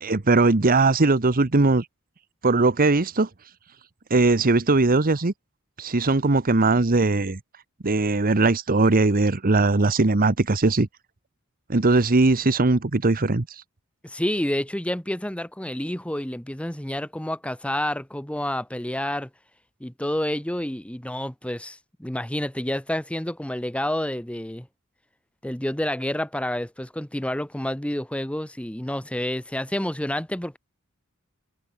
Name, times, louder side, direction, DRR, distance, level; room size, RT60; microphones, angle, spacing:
voice 1, 0.0-1.8 2.4-3.3 4.1-5.3 5.8-7.4 7.8-10.9 11.7-13.5, right 3 dB, 40° right, 1.0 m, -20 dB
voice 2, 14.0-19.3 19.8-24.7 25.4-30.6, left 1 dB, 5° left, 1.0 m, -29 dB
head